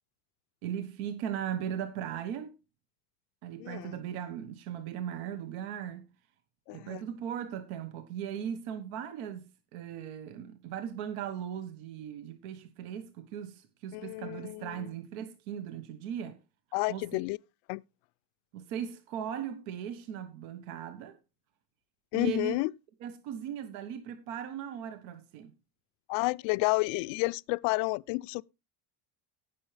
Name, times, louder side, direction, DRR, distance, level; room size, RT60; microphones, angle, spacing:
voice 1, 0.6-2.5 3.4-6.1 6.7-16.4 16.9-17.2 18.5-21.2 22.1-22.6 23.0-25.5, right 9 dB, 75° right, 1.4 m, -38 dB
voice 2, 3.6-4.0 6.7-7.0 13.9-14.7 16.7-17.4 17.7-17.8 22.1-22.7 26.1-28.4, left 25 dB, 70° left, 0.6 m, -30 dB
18.0 x 6.1 x 3.3 m
cardioid pair, 150°, 49 cm